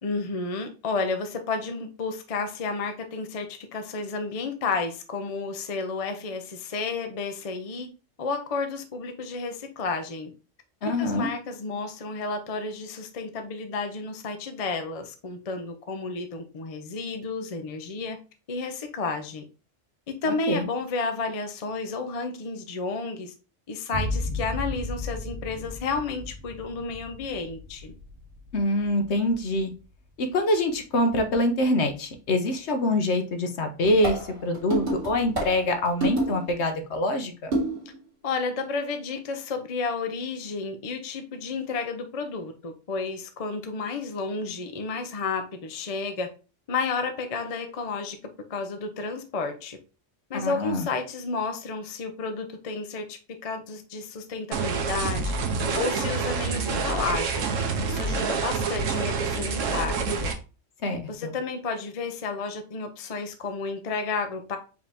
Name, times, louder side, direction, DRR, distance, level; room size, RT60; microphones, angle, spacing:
voice 1, 0.0-7.9 8.2-10.3 11.0-18.2 18.5-19.4 20.1-23.3 23.7-27.9 38.2-46.3 46.7-48.2 48.5-49.8 50.3-55.4 55.7-57.5 57.8-60.3 61.1-64.6, left 4 dB, 40° left, 0.6 m, -31 dB
voice 2, 10.8-11.3 20.3-20.7 28.5-29.7 30.2-37.5 50.3-50.9 60.8-61.3, left 1 dB, 65° left, 1.0 m, -25 dB
sound 1, 23.9-31.3, left 1 dB, 65° right, 1.6 m, -35 dB
sound 2, 33.8-36.5 37.5-38.0, right 2 dB, 50° right, 1.9 m, -29 dB
sound 3, 54.5-60.3, right 4 dB, 80° right, 1.1 m, -27 dB
4.9 x 2.8 x 3.4 m
omnidirectional pair, 1.3 m